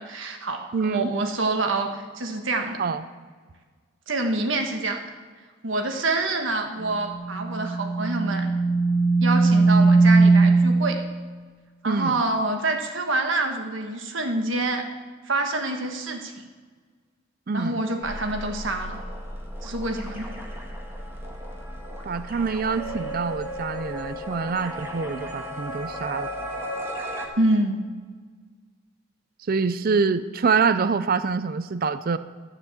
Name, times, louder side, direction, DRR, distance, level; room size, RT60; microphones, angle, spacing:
voice 1, 0.0-2.8 4.1-5.0 5.6-8.5 9.2-11.0 11.8-14.9 15.2-16.5 17.5-19.0 19.6-20.3 27.4-27.8, right 2 dB, 75° right, 4 dB, 1.4 m, -26 dB
voice 2, 0.7-1.1 2.8-3.0 11.8-12.2 17.5-17.8 22.1-26.3 29.5-32.2, right 5 dB, 45° right, 13 dB, 0.4 m, -25 dB
sound 1, 6.8-10.7, right 3 dB, 15° left, 2.4 m, -19 dB
sound 2, 18.0-27.3, equal, 10° right, 1.5 m, -35 dB
13.5 x 6.7 x 7.1 m, 1.5 s
head